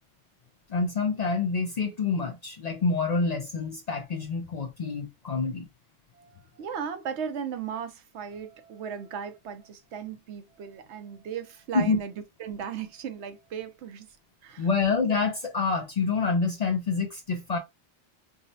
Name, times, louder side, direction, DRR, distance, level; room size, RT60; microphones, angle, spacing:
voice 1, 0.7-5.7 11.7-12.0 14.6-17.6, left 4 dB, 55° left, 0.5 m, -27 dB
voice 2, 6.1-12.1 12.4-14.1 14.4-14.7, right 7 dB, 80° right, 0.9 m, -36 dB
4.7 x 2.1 x 2.6 m
omnidirectional pair, 1.1 m